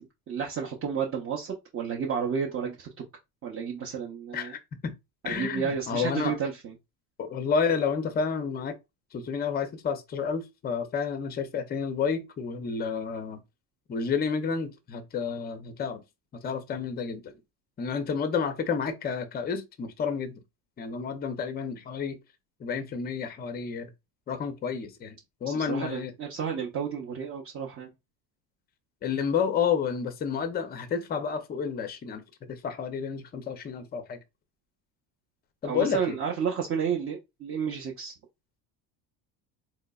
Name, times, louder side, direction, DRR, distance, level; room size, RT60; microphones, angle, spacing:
voice 1, 0.0-2.9 3.4-4.5 5.2-6.7 25.5-27.9 35.6-38.1, right 7 dB, 30° right, 0.6 m, -31 dB
voice 2, 4.3-4.9 5.2-6.4 7.2-8.8 9.1-13.4 13.9-16.0 16.4-17.3 17.8-20.4 20.8-22.2 22.6-23.9 24.3-26.1 29.0-32.2 32.5-34.2 35.6-36.2, left 6 dB, 20° left, 0.4 m, -30 dB
3.8 x 3.0 x 2.2 m
cardioid pair, 140°, 46 cm